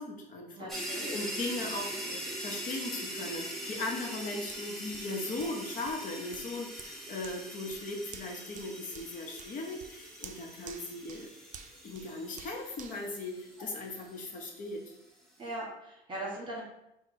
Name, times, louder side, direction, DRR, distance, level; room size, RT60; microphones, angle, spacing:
voice 1, 0.0-0.7 1.1-1.9 2.4-11.3 11.8-14.9, left 2 dB, 50° left, 1 dB, 0.9 m, -38 dB
voice 2, 0.5-1.2 1.5-2.4 15.4-16.6, right 1 dB, 30° right, -4 dB, 1.5 m, -41 dB
sound 1, 0.7-14.3, equal, ahead, 1.0 m, -42 dB
Hands, 4.5-14.0 14.5-14.6, right 7 dB, 50° right, 0.4 m, -53 dB
4.2 x 2.3 x 4.3 m, 0.84 s
cardioid pair, 110°, 17 cm